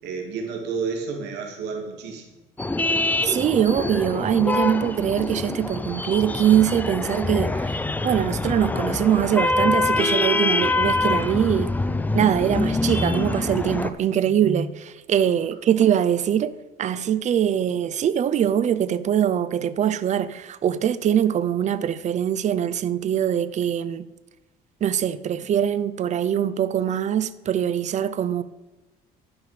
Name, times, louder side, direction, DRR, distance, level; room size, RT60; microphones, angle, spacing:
voice 1, 0.0-2.4, right 5 dB, 85° right, 2.3 m, -31 dB
sound 1, 2.6-13.9, left 2 dB, 10° left, 0.5 m, -25 dB
voice 2, 3.2-7.8 8.0-11.7 12.1-16.5 16.8-24.1 24.8-28.4, right 9 dB, 45° right, 0.6 m, -22 dB
12.0 x 5.1 x 5.0 m
cardioid pair, 110°, 17 cm